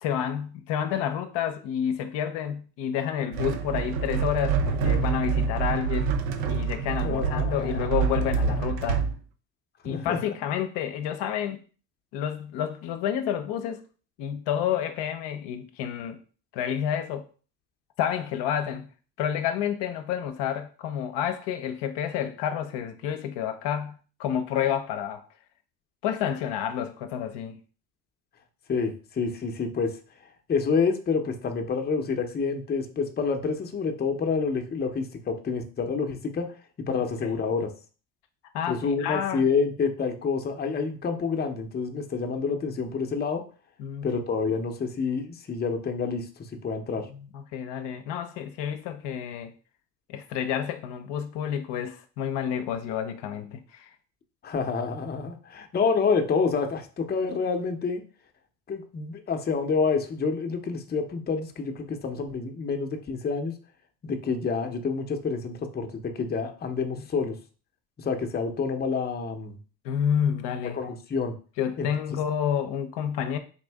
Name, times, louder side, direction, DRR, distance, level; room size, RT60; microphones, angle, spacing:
voice 1, 0.0-6.1 6.5-9.0 9.8-11.6 12.1-13.8 14.2-16.2 16.5-17.3 18.0-18.9 19.2-25.3 26.0-27.6 36.9-37.0 37.2-37.4 38.5-39.4 43.8-44.1 47.1-49.5 50.1-53.9 69.8-70.8 71.6-73.4, left 9 dB, 60° left, 0.7 m, -29 dB
sound 1, 3.3-9.1, right 6 dB, 90° right, 0.7 m, -26 dB
voice 2, 7.0-8.0 9.9-10.3 28.7-30.0 30.5-36.5 36.9-37.7 38.7-43.4 44.0-46.3 46.6-47.1 54.4-58.0 58.7-63.5 64.0-67.4 68.0-69.6 70.7-71.3 71.8-71.9, left 5 dB, 20° left, 0.6 m, -28 dB
4.3 x 2.6 x 3.4 m
supercardioid pair, 80°, 47 cm